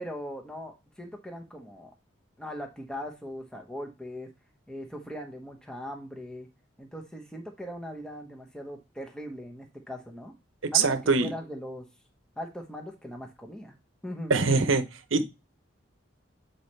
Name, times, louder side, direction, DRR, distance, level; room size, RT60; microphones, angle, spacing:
voice 1, 0.0-1.9 2.4-4.3 4.7-6.5 6.8-10.3 10.7-11.8 12.4-13.7 14.0-14.6, equal, 5° left, 2 dB, 1.0 m, -40 dB
voice 2, 10.7-11.3 14.3-14.8 15.1-15.2, right 4 dB, 85° right, 10 dB, 0.9 m, -22 dB
8.0 x 4.2 x 3.3 m, 0.25 s
head